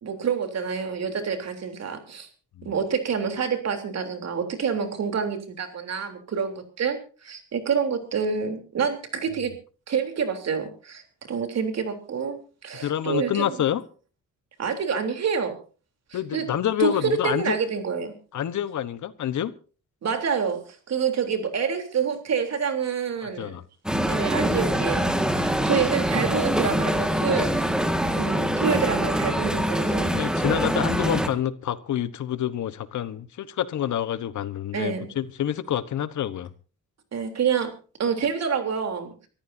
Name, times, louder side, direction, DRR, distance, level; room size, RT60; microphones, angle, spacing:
voice 1, 0.0-2.3 2.6-9.5 9.9-11.0 11.3-13.6 14.6-15.6 16.1-16.5 16.8-18.2 20.0-23.6 24.1-25.1 25.3-27.8 28.2-30.1 34.7-35.1 37.1-37.7 38.0-39.1, right 6 dB, 55° right, 3.5 m, -27 dB
voice 2, 12.8-13.8 16.1-17.6 18.3-19.5 23.4-23.6 30.1-36.5, left 10 dB, 65° left, 1.2 m, -27 dB
sound 1, 23.9-31.3, equal, ahead, 1.8 m, -24 dB
25.0 x 14.0 x 2.7 m
cardioid pair, 140°, 31 cm